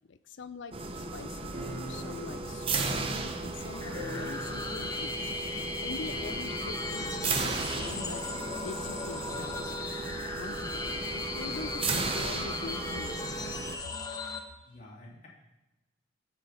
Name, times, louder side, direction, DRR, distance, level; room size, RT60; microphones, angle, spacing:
voice 1, 0.1-5.2 5.8-8.2 8.6-13.2, left 4 dB, 75° left, 14 dB, 0.5 m, -44 dB
sound 1, 0.7-13.8, right 3 dB, 30° right, 0.7 m, -35 dB
sound 2, 1.5-3.7 3.9-4.9 5.2-5.3 6.1-6.9, equal, 45° right, 3.4 m, -42 dB
sound 3, 3.7-14.4, left 3 dB, 20° left, 0.7 m, -37 dB
voice 2, 14.6-15.3, left 1 dB, 40° left, -5 dB, 3.0 m, -51 dB
16.0 x 5.8 x 4.4 m, 1.0 s
head